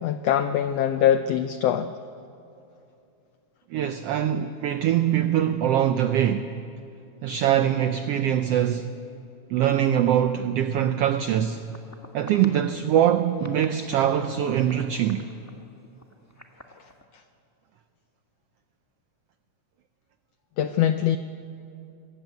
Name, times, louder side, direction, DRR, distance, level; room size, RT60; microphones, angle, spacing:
voice 1, 0.0-1.9 20.6-21.2, left 10 dB, 85° left, 1.4 m, -23 dB
voice 2, 3.7-6.5 7.2-9.0 9.5-11.7 12.1-15.3, right 10 dB, 90° right, 1.3 m, -23 dB
sound 1, 11.4-13.0 13.4-17.0, left 1 dB, 20° left, 0.4 m, -47 dB
25.5 x 15.0 x 9.2 m
omnidirectional pair, 3.6 m